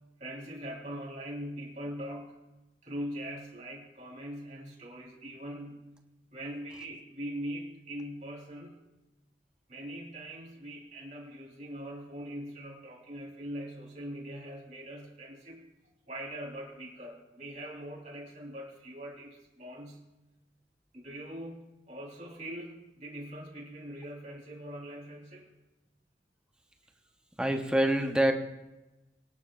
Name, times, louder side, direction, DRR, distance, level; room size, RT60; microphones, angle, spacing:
voice 1, 0.2-2.3 2.8-5.9 6.3-8.8 9.7-15.7 16.1-20.1 20.9-25.5, equal, 40° right, -3 dB, 3.7 m, -42 dB
voice 2, 27.4-28.3, right 1 dB, 5° right, 4 dB, 0.9 m, -25 dB
23.0 x 11.0 x 2.4 m, 0.99 s
head